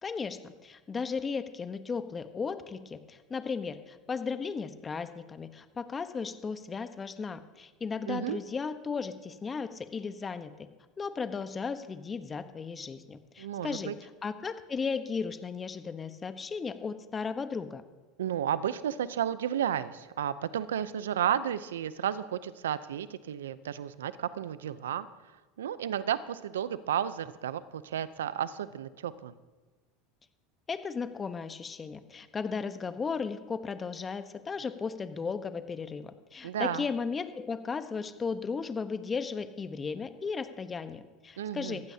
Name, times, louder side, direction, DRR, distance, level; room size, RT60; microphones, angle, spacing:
voice 1, 0.0-10.5 11.0-17.8 30.7-41.9, left 5 dB, 25° left, 10 dB, 1.1 m, -35 dB
voice 2, 8.1-8.4 13.4-13.9 18.2-25.1 25.6-29.3 36.4-36.9 41.4-41.8, right 10 dB, 85° right, 15 dB, 0.6 m, -32 dB
18.5 x 15.0 x 2.9 m, 1.3 s
hypercardioid pair, 90°, 0 cm